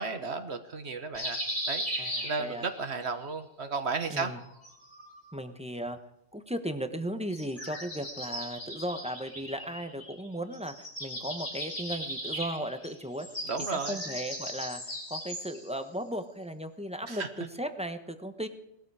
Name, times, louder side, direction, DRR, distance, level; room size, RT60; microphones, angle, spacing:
voice 1, 0.0-4.3 13.4-14.0 17.1-17.3, right 4 dB, 75° right, 8 dB, 1.6 m, -34 dB
sound 1, 1.1-2.9 4.3-5.4 7.3-10.3 10.5-15.7, equal, 45° left, 7.1 m, -38 dB
voice 2, 2.0-2.7 4.1-4.4 5.3-6.0 6.3-13.3 13.6-14.8 15.1-18.5, right 1 dB, 5° right, 8 dB, 1.2 m, -36 dB
19.5 x 13.5 x 5.0 m, 0.83 s
omnidirectional pair, 1.1 m